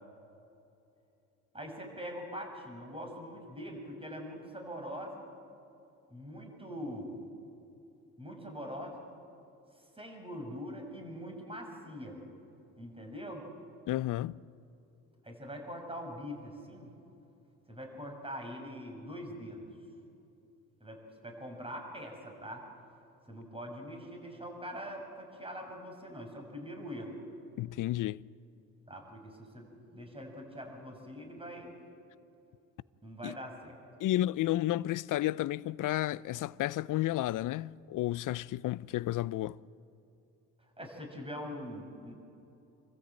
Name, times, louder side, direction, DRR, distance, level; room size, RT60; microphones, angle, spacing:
voice 1, 1.5-5.2 6.1-7.2 8.2-9.0 10.0-12.2 12.8-13.5 15.2-16.9 17.7-19.7 20.8-22.6 23.3-27.2 28.9-31.8 33.0-33.8 40.8-42.1, equal, 15° right, 7.2 m, -43 dB
voice 2, 13.9-14.4 27.6-28.2 33.2-33.3 34.0-39.6, left 15 dB, 50° left, 0.6 m, -32 dB
27.5 x 14.0 x 8.9 m
hypercardioid pair, 65°, 40 cm